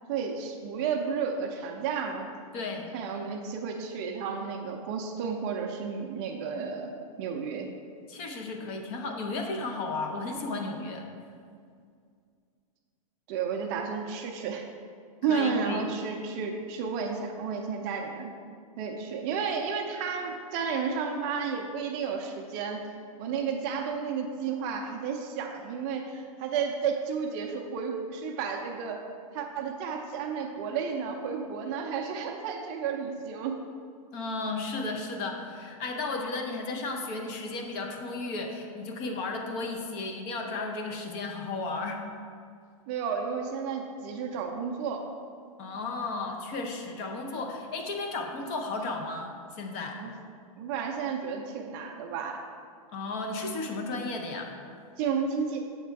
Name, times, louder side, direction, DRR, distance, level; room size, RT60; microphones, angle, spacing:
voice 1, 0.1-2.2 2.9-6.9 7.2-7.7 13.3-14.7 15.2-18.3 18.8-22.8 23.2-29.0 29.3-33.6 42.9-45.1 50.0-50.1 50.6-52.4 55.0-55.6, right 6 dB, 35° right, 3 dB, 0.5 m, -32 dB
voice 2, 2.5-2.9 3.2-3.3 8.1-11.1 15.3-15.9 34.1-42.0 45.6-50.0 52.9-54.5, left 3 dB, 35° left, 3 dB, 0.7 m, -34 dB
7.2 x 3.4 x 4.5 m, 2.2 s
hypercardioid pair, 150°, 18 cm